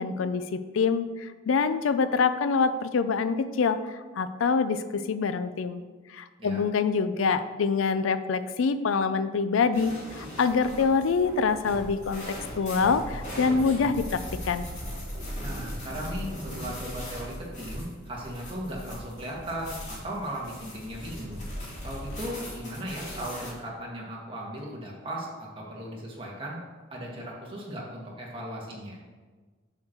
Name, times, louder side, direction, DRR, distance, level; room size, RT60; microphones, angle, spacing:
voice 1, 0.0-5.8 6.1-14.7, left 5 dB, 75° left, 12 dB, 0.4 m, -26 dB
sound 1, 9.7-23.5, equal, 35° left, 2.7 m, -39 dB
sound 2, 14.3-17.5 17.8-18.2, right 1 dB, 40° right, 1.1 m, -47 dB
voice 2, 15.4-21.4 21.8-26.6 26.9-29.0, right 1 dB, 25° right, -3 dB, 1.7 m, -37 dB
7.2 x 4.5 x 6.5 m, 1.4 s
head